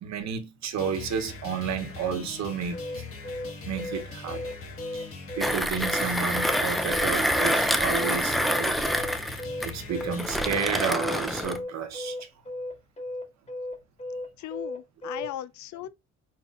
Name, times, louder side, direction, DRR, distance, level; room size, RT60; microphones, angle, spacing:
voice 1, 0.0-2.8 3.6-4.4 4.9-5.0 5.4-8.7 9.6-12.1, right 6 dB, 65° right, 1.0 m, -31 dB
sound 1, 0.8-11.4, left 3 dB, 45° left, 1.5 m, -41 dB
sound 2, 2.7-15.3, left 1 dB, 20° left, 2.2 m, -35 dB
Mechanisms, 5.4-11.6, equal, ahead, 0.5 m, -27 dB
voice 2, 14.4-15.9, left 13 dB, 70° left, 0.5 m, -37 dB
4.3 x 4.0 x 2.5 m
cardioid pair, 90°, 30 cm